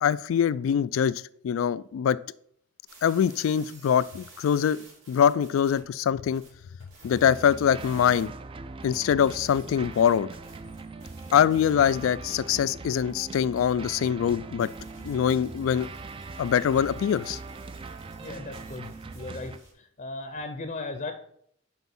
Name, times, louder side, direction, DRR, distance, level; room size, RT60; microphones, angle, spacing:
voice 1, 0.0-1.1 1.4-2.2 3.0-4.8 5.1-6.4 7.0-8.3 8.8-10.3 11.3-14.7 15.0-15.9 16.4-17.4, left 8 dB, 80° left, 17 dB, 0.3 m, -23 dB
sound 1, 2.9-5.8 6.3-8.3 9.0-19.7, right 3 dB, 75° right, 2.9 m, -54 dB
sound 2, 7.1-19.6, right 3 dB, 25° right, 0.3 m, -41 dB
voice 2, 18.2-21.1, left 3 dB, 40° left, 7 dB, 0.6 m, -37 dB
6.1 x 4.6 x 5.4 m, 0.67 s
head